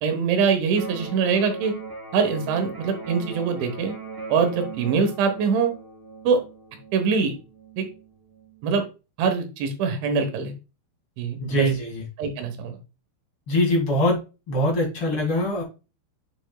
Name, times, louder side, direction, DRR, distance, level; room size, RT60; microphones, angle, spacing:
voice 1, 0.0-1.7 2.1-4.0 4.3-5.7 6.3-6.4 6.9-7.3 7.8-7.9 8.6-8.9 9.2-10.5 11.2-11.7 12.2-12.8, right 5 dB, 75° right, 6 dB, 3.5 m, -23 dB
Electric guitar, 0.7-8.7, right 3 dB, 30° right, 5.4 m, -39 dB
voice 2, 11.4-12.0 13.5-14.2 14.5-15.6, left 1 dB, 40° left, -2 dB, 2.0 m, -23 dB
7.8 x 7.0 x 2.3 m, 0.30 s
omnidirectional pair, 5.6 m